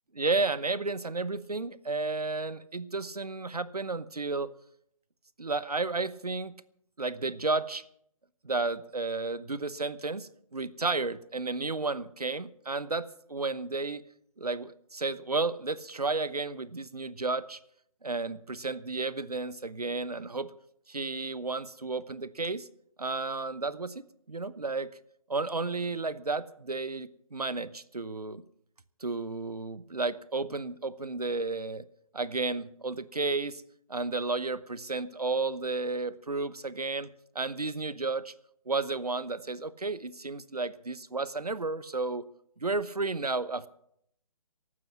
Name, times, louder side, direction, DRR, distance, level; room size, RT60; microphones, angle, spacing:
voice 1, 0.1-4.5 5.4-6.5 7.0-7.8 8.4-14.0 14.4-17.6 18.0-20.5 20.9-22.7 23.0-24.9 25.3-28.4 29.0-31.9 32.1-33.6 33.9-38.3 38.7-42.2 42.6-43.7, right 3 dB, 85° right, 17 dB, 0.9 m, -32 dB
15.5 x 12.5 x 6.0 m, 0.73 s
figure-of-eight pair, 140°, 19 cm